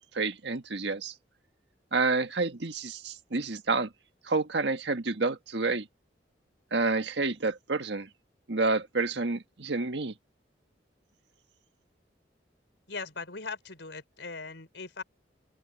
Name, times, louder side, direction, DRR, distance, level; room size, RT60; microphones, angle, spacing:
voice 1, 0.1-1.1 1.9-3.9 4.3-5.9 6.7-8.1 8.5-10.1, right 3 dB, 70° right, 1.6 m, -29 dB
voice 2, 12.9-15.0, left 4 dB, 80° left, 4.4 m, -39 dB
open air
head